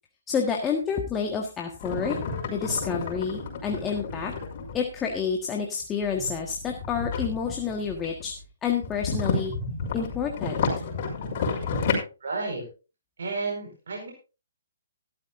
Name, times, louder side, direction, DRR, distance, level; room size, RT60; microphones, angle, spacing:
voice 1, 0.3-2.2 2.5-4.3 4.7-8.3 8.6-9.5 9.9-10.6, left 6 dB, 15° left, 1 dB, 1.5 m, -29 dB
sound 1, 1.8-4.8 6.0-8.3 8.7-11.9, left 4 dB, 40° left, 5.9 m, -31 dB
voice 2, 12.2-12.7 13.2-14.1, right 3 dB, 70° right, 1 dB, 4.8 m, -31 dB
16.0 x 13.0 x 2.6 m, 0.32 s
hypercardioid pair, 155°, 0 cm